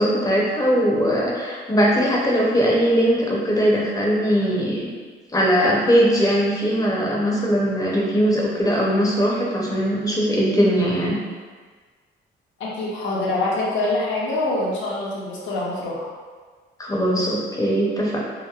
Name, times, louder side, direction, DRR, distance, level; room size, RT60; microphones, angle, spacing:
voice 1, 0.0-4.9 5.3-11.2 16.8-18.2, equal, 20° left, -3 dB, 0.6 m, -20 dB
voice 2, 12.6-16.1, left 2 dB, 75° left, -5 dB, 0.6 m, -25 dB
2.8 x 2.0 x 2.3 m, 1.5 s
cardioid pair, 90°, 20 cm